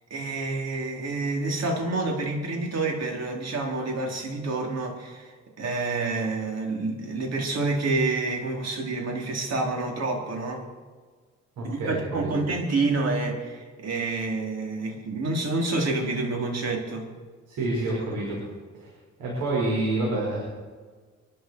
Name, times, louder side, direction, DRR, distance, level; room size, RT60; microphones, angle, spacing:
voice 1, 0.1-10.7 11.6-17.1, right 3 dB, 60° right, 0 dB, 4.1 m, -28 dB
voice 2, 11.6-12.3 17.5-18.4 18.8-18.9 19.2-20.4, right 2 dB, 85° right, -4 dB, 5.7 m, -28 dB
24.5 x 12.5 x 4.7 m, 1.5 s
cardioid pair, 90°, 30 cm